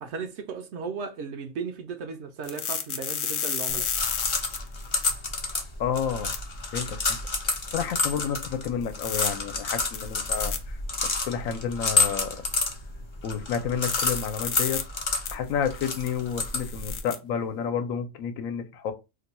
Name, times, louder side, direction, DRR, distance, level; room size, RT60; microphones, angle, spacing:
voice 1, 0.0-3.9, right 5 dB, 65° right, 0.8 m, -36 dB
sound 1, 2.4-5.1 6.3-6.4 7.5-7.6 8.8-9.3 9.9-10.6 13.9-14.8 15.3-15.4 15.8-17.2, left 8 dB, 65° left, 0.7 m, -31 dB
sound 2, 3.7-17.0, left 3 dB, 45° left, 0.4 m, -30 dB
voice 2, 5.8-6.3 6.7-7.2 7.5-10.8 11.2-12.4 13.2-14.8 15.3-18.9, left 7 dB, 85° left, 1.0 m, -30 dB
2.7 x 2.2 x 4.1 m
omnidirectional pair, 1.4 m